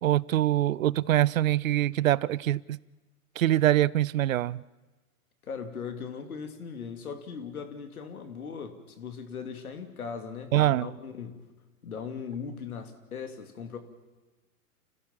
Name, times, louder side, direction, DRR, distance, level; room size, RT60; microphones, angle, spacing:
voice 1, 0.0-2.8 3.4-4.6 10.5-10.9, right 13 dB, 60° right, 0.7 m, -24 dB
voice 2, 5.4-11.5 11.8-13.8, left 6 dB, 70° left, 3.1 m, -39 dB
29.5 x 16.0 x 7.4 m
figure-of-eight pair, 110°, 45 cm